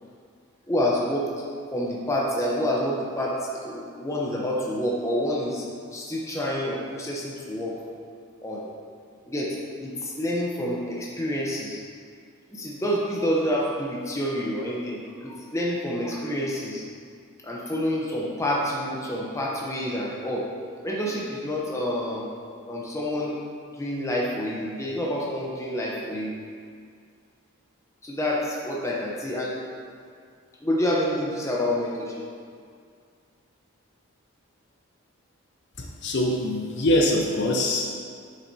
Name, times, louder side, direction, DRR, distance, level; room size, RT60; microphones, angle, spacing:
voice 1, 0.7-1.3 1.7-5.6 5.9-7.8 8.4-8.7 9.3-11.8 12.5-16.8 17.4-20.5 20.8-22.3 22.7-23.4 23.8-26.3 28.0-29.6 30.6-32.2, equal, 15° left, -3 dB, 0.7 m, -28 dB
voice 2, 35.8-38.0, left 1 dB, 50° left, 0 dB, 0.7 m, -24 dB
7.4 x 7.0 x 2.7 m, 2.2 s
head